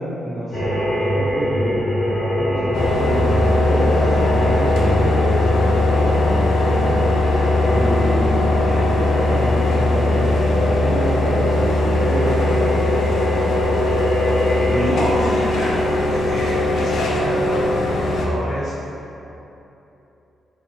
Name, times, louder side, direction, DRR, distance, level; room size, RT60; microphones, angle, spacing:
voice 1, 0.0-7.0 7.7-12.4, right 1 dB, 25° right, -7 dB, 0.3 m, -27 dB
sound 1, 0.5-16.0, equal, 15° left, 1.1 m, -25 dB
sound 2, 2.7-18.3, left 2 dB, 75° left, 0.4 m, -19 dB
voice 2, 14.6-18.7, equal, 55° right, -11 dB, 1.3 m, -28 dB
3.3 x 2.8 x 2.8 m, 2.9 s
wide cardioid pair, 155°, 0 cm